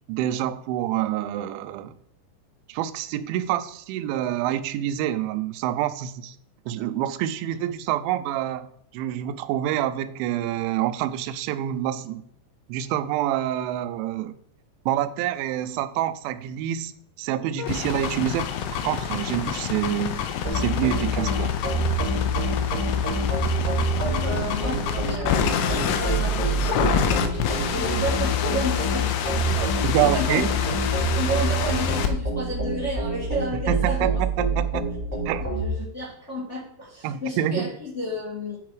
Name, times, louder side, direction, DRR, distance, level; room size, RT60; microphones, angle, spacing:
voice 1, 0.1-1.9 2.7-6.4 6.7-8.7 8.9-12.2 12.7-14.4 14.9-16.9 17.2-18.5 18.8-20.2 20.5-21.5 29.8-30.5 33.7-34.8 35.3-35.5 37.0-37.7, right 12 dB, 85° right, 10 dB, 2.8 m, -27 dB
sound 1, 17.6-32.1, left 8 dB, 80° left, 3.1 m, -28 dB
sound 2, 20.4-35.7, right 1 dB, 20° right, 1.2 m, -26 dB
voice 2, 23.1-23.5 24.0-29.1 29.5-30.5 31.0-34.2 34.7-34.8 35.4-38.6, left 1 dB, 30° left, -5 dB, 1.4 m, -32 dB
10.0 x 4.6 x 4.7 m, 0.68 s
omnidirectional pair, 5.3 m